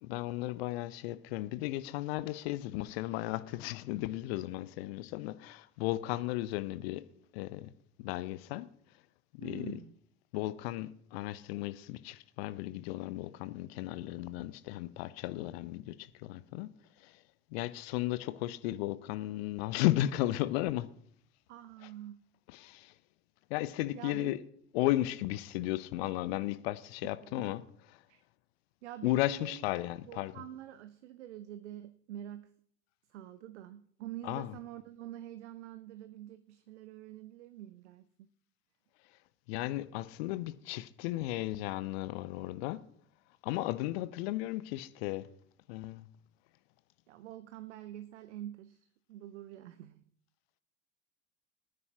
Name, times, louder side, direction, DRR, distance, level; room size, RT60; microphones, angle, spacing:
voice 1, 0.0-7.1 7.3-7.7 8.0-8.7 9.3-9.8 10.3-16.7 17.0-17.2 17.5-20.9 21.8-21.9 22.5-22.9 23.5-24.4 24.7-27.6 27.9-28.0 29.0-30.4 34.2-34.6 39.5-42.8 43.4-45.3 45.7-46.1, left 16 dB, 50° left, 0.7 m, -35 dB
voice 2, 9.4-9.9 21.5-22.2 23.9-24.4 27.4-27.5 28.1-28.2 28.8-29.6 30.0-32.5 33.1-38.0 47.1-50.0, right 12 dB, 60° right, 0.7 m, -46 dB
20.5 x 9.5 x 2.9 m
figure-of-eight pair, 70°, 39 cm